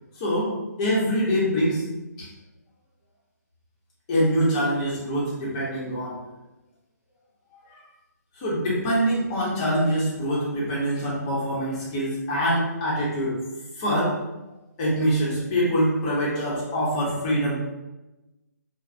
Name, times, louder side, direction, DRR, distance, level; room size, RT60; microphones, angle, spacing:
voice 1, 0.2-0.5 0.8-1.8 2.2-2.3 4.1-6.2 7.7-7.8 8.4-13.4 13.8-14.2 14.8-17.5, equal, 20° left, -5 dB, 0.7 m, -24 dB
3.0 x 2.0 x 2.5 m, 1.0 s
hypercardioid pair, 160°, 10 cm